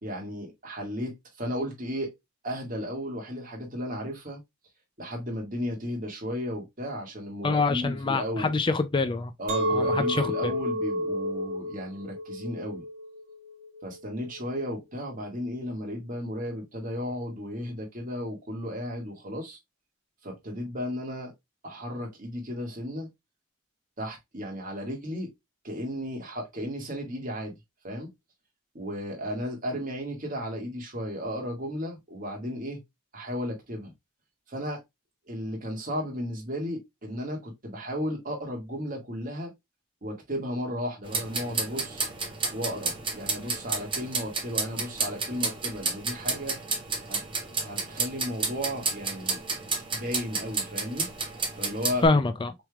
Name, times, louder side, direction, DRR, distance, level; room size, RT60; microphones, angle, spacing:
voice 1, 0.0-2.1 2.4-4.4 5.0-8.5 9.4-12.8 13.8-19.6 20.2-21.3 21.6-23.1 24.0-25.3 25.6-27.5 27.8-28.1 28.7-32.8 33.1-33.9 34.5-34.8 35.3-39.5 40.0-42.0 42.5-46.6 47.1-47.2 47.6-49.4 49.9-51.1 51.6-52.0, equal, 40° right, 2.0 m, -34 dB
voice 2, 7.4-9.3 9.7-10.5 52.0-52.5, left 3 dB, 25° left, 0.4 m, -25 dB
Chink clink, 9.5-14.7, equal, 80° right, 1.8 m, -31 dB
sound 1, 41.0-52.1, right 4 dB, 25° right, 1.6 m, -31 dB
5.9 x 3.5 x 2.4 m
head